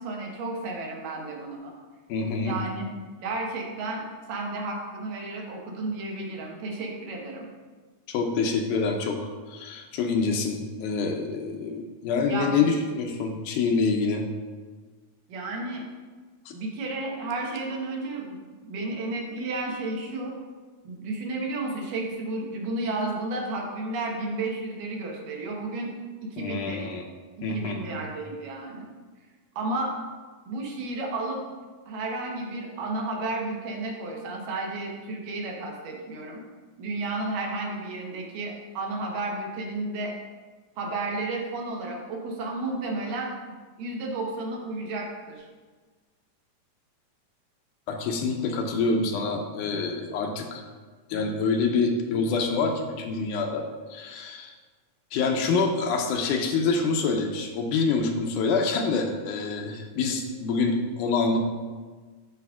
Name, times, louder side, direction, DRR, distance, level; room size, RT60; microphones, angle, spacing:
voice 1, 0.0-1.7 2.4-2.9 3.2-4.0 4.3-7.5 12.3-12.7 15.3-15.8 16.5-20.4 20.8-25.9 26.3-26.9 27.5-28.9 29.6-29.9 30.5-31.4 31.9-36.4 36.8-40.1 40.8-43.3 43.8-45.5, right 2 dB, 85° right, -1 dB, 2.8 m, -32 dB
voice 2, 2.1-2.6 8.1-9.2 9.5-14.3 16.5-16.6 26.4-27.0 27.4-28.0 47.9-50.6 51.1-54.5 55.1-61.4, left 4 dB, 80° left, 3 dB, 2.1 m, -26 dB
12.0 x 5.0 x 2.4 m, 1.4 s
omnidirectional pair, 3.7 m